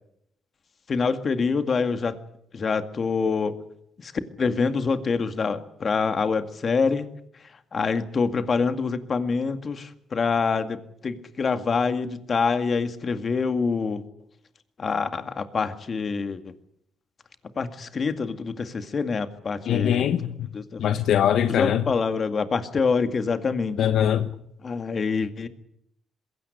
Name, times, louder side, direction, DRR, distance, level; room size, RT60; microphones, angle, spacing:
voice 1, 0.9-2.2 2.5-3.6 4.0-4.1 4.4-7.1 7.7-14.0 14.8-16.4 17.6-20.0 20.5-20.8 21.5-23.8 24.6-25.5, left 5 dB, 40° left, 2.1 m, -26 dB
voice 2, 19.7-20.5 20.8-21.8 23.8-24.3, left 10 dB, 75° left, 1.0 m, -22 dB
21.5 x 17.0 x 9.8 m
cardioid pair, 90°, 0 cm